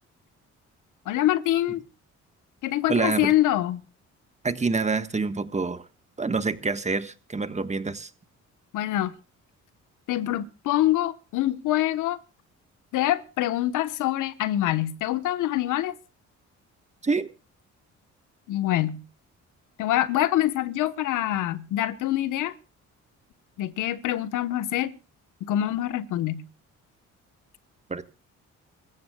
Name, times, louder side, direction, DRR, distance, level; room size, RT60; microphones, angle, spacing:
voice 1, 1.1-1.8 2.6-3.8 8.7-9.1 10.1-12.2 12.9-15.9 18.5-19.0 19.8-22.5 23.6-24.9 25.4-26.4, left 13 dB, 85° left, 1.2 m, -25 dB
voice 2, 2.9-3.3 4.4-5.8 6.2-8.1 17.0-17.3 27.9-28.0, right 4 dB, 25° right, 1.5 m, -26 dB
25.5 x 15.5 x 2.3 m
cardioid pair, 90°, 30 cm